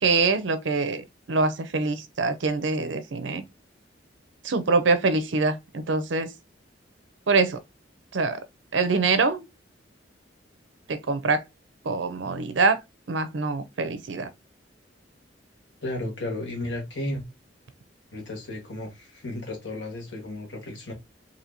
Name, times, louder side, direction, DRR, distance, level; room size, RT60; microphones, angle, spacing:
voice 1, 0.0-3.4 4.4-6.3 7.3-7.6 8.1-8.4 8.7-9.4 10.9-11.4 11.8-12.8 13.1-14.3, right 3 dB, 85° right, 0.6 m, -24 dB
voice 2, 15.8-17.2 18.1-20.9, left 1 dB, 70° left, 1.4 m, -33 dB
4.2 x 2.7 x 2.7 m
head